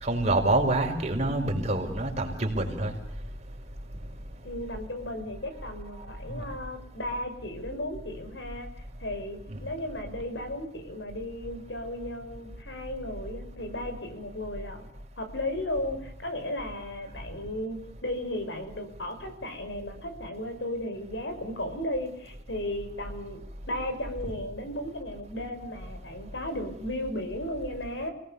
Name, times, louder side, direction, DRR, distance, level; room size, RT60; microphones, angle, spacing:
voice 1, 0.0-2.9 6.3-6.4 9.5-9.6, right 2 dB, 40° right, 2 dB, 5.5 m, -26 dB
voice 2, 1.6-2.0 4.4-8.7 9.0-14.9 15.2-28.1, left 1 dB, 85° left, 7 dB, 5.9 m, -35 dB
29.5 x 19.0 x 7.2 m, 0.72 s
head